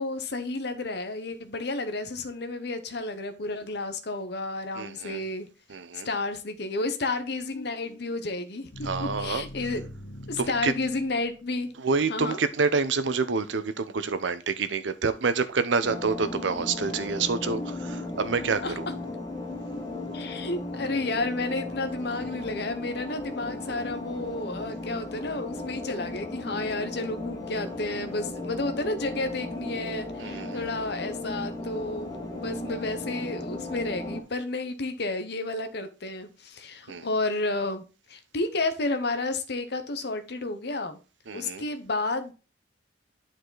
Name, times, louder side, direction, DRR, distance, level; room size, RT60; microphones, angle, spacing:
voice 1, 0.0-5.5 6.0-9.8 10.3-11.7 12.1-12.4 18.6-18.8 20.1-37.8 38.1-41.0 41.3-42.3, left 2 dB, 60° left, 0.8 m, -31 dB
voice 2, 4.8-5.3 5.7-6.1 8.8-9.5 10.4-10.7 11.8-18.9 30.2-30.7 36.9-37.1 41.3-41.6, right 4 dB, 75° right, 0.7 m, -28 dB
sound 1, 7.5-11.6, left 1 dB, 80° left, 1.7 m, -42 dB
sound 2, 15.8-34.2, left 2 dB, 20° left, 1.3 m, -36 dB
9.0 x 4.8 x 3.9 m
head